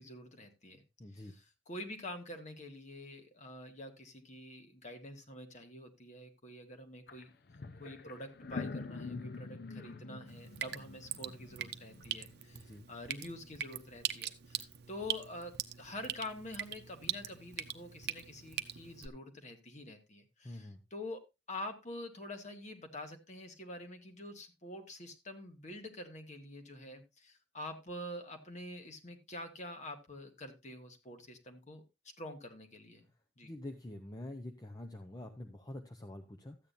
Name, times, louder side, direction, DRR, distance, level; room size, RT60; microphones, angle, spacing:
voice 1, 0.0-0.8 1.1-7.3 7.8-31.8 32.2-33.1 33.4-33.5, left 1 dB, 40° left, 5 dB, 1.6 m, -47 dB
voice 2, 1.0-1.3 12.5-12.9 20.4-20.8 33.4-36.6, left 1 dB, 20° left, 5 dB, 0.7 m, -46 dB
sound 1, 7.1-7.2 7.5-12.4, left 3 dB, 60° left, 0.7 m, -45 dB
Drip, 10.3-19.1, right 11 dB, 65° right, 0.7 m, -42 dB
13.5 x 8.8 x 2.6 m, 0.22 s
head